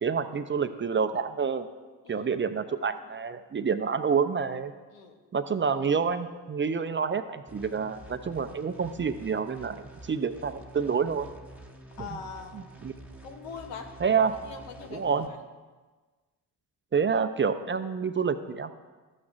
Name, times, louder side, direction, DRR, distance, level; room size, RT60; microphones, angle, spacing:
voice 1, 0.0-1.7 2.1-4.7 5.3-11.3 12.0-12.2 12.5-12.9 14.0-14.3 14.9-15.3 16.9-18.7, right 6 dB, 25° right, 10 dB, 0.5 m, -28 dB
sound 1, 7.5-15.3, right 1 dB, 5° right, 1.1 m, -48 dB
voice 2, 12.0-12.6 13.2-13.9 14.5-15.2, left 6 dB, 85° left, 5 dB, 0.9 m, -42 dB
12.5 x 8.5 x 2.5 m, 1.3 s
hypercardioid pair, 45°, 48 cm